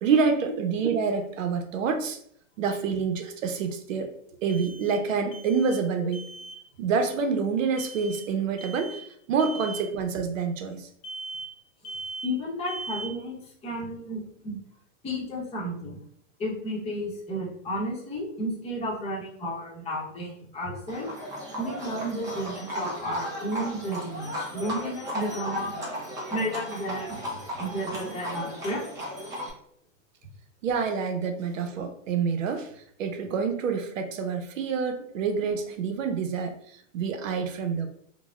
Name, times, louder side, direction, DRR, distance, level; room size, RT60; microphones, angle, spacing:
voice 1, 0.0-2.2 2.6-4.1 4.4-6.3 6.8-9.0 9.3-10.9 30.6-32.7 33.0-36.6 36.9-37.9, right 5 dB, 75° right, 6 dB, 0.7 m, -27 dB
sound 1, 4.5-5.1 5.3-5.9 6.1-6.6 7.8-8.3 8.6-9.1 9.4-9.9 11.0-11.6 11.8-12.4 12.7-13.2, right 3 dB, 90° left, 0.9 m, -39 dB
voice 2, 12.2-13.4 13.6-14.6 15.0-15.9 16.4-21.1 21.6-26.0 26.3-28.8, equal, 15° left, -4 dB, 0.8 m, -32 dB
Livestock farm animals working animals, 20.9-29.5, equal, 10° right, 0.3 m, -35 dB
3.9 x 2.1 x 2.3 m, 0.66 s
hypercardioid pair, 135°, 39 cm